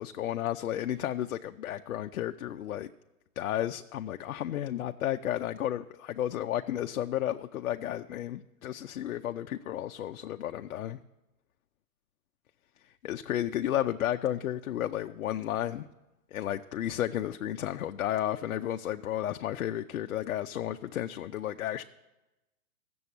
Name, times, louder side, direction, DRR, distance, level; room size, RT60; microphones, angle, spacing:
voice 1, 0.0-2.9 3.4-11.0 13.0-15.9 16.3-21.8, left 11 dB, 65° left, 7 dB, 0.6 m, -32 dB
15.0 x 7.0 x 8.2 m, 1.0 s
hypercardioid pair, 160°, 43 cm